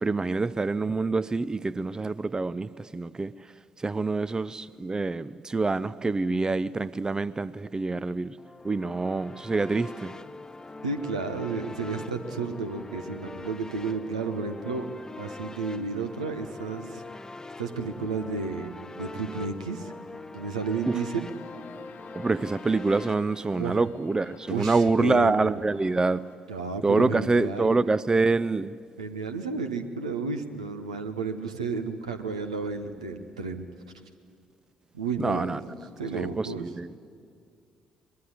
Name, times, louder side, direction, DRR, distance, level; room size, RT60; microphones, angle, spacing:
voice 1, 0.0-3.3 3.8-8.4 8.6-10.1 20.9-21.0 22.1-26.2 26.8-28.7 35.2-35.6 36.1-37.0, right 3 dB, 20° right, 0.5 m, -26 dB
sound 1, 8.4-23.1, left 3 dB, 15° left, 0.7 m, -42 dB
voice 2, 10.8-14.8 15.2-17.0 17.6-19.9 20.3-21.3 23.6-23.8 24.5-25.5 26.5-27.8 29.0-33.6 34.9-36.6, right 4 dB, 80° right, 1.1 m, -32 dB
sound 2, 21.2-26.4, left 8 dB, 55° left, 1.2 m, -51 dB
22.5 x 21.5 x 9.5 m
figure-of-eight pair, 45°, 3 cm